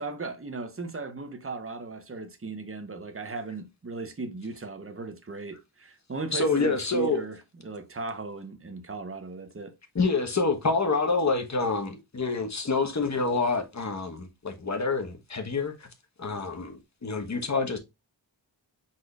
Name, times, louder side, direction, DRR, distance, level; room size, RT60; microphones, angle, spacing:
voice 1, 0.0-7.4 7.6-9.8, right 3 dB, 30° right, 0.9 m, -37 dB
voice 2, 6.3-7.2 9.9-15.9 16.2-17.8, left 3 dB, 40° left, 1.2 m, -27 dB
4.9 x 4.2 x 2.4 m
wide cardioid pair, 90°, 43 cm